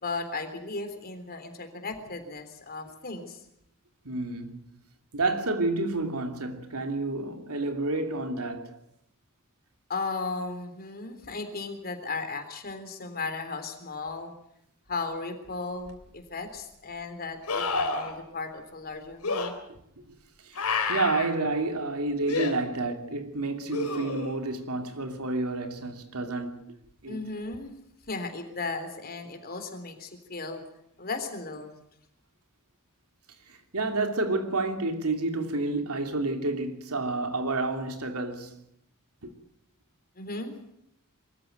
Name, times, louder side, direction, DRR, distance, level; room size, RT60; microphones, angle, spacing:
voice 1, 0.0-3.4 9.9-14.3 14.9-19.6 27.1-27.7 28.1-30.6 31.0-31.8 40.2-40.5, left 3 dB, 45° left, 3.6 m, -36 dB
voice 2, 4.0-4.6 5.1-8.8 20.4-26.6 27.0-27.2 33.5-38.6 39.2-39.3, right 2 dB, 75° right, 2.8 m, -30 dB
sound 1, 15.9-16.0 17.5-18.1 19.2-19.5 20.6-21.3 22.3-22.5 23.7-24.4 27.5-27.6, left 4 dB, 90° left, 3.6 m, -29 dB
23.5 x 14.0 x 9.3 m
head